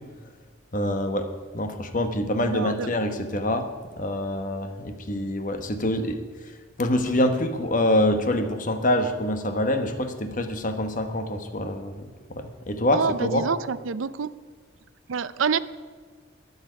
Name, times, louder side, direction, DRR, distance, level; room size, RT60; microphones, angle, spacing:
voice 1, 0.7-1.3 1.5-3.7 4.0-6.2 6.8-13.4, left 1 dB, 40° left, 7 dB, 1.2 m, -25 dB
voice 2, 2.5-2.9 12.9-14.3 15.1-15.6, right 6 dB, 85° right, 16 dB, 0.5 m, -27 dB
21.5 x 8.2 x 5.2 m, 1.5 s
head